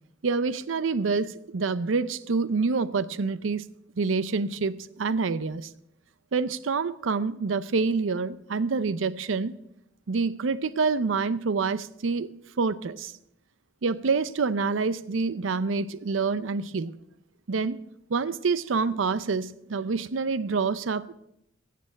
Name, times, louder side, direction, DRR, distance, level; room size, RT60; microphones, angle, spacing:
voice 1, 0.2-3.6 4.0-5.7 6.3-9.6 10.1-13.1 13.8-17.0 17.5-17.8 18.1-21.1, right 4 dB, 90° right, 0.6 m, -27 dB
17.0 x 6.8 x 6.3 m
head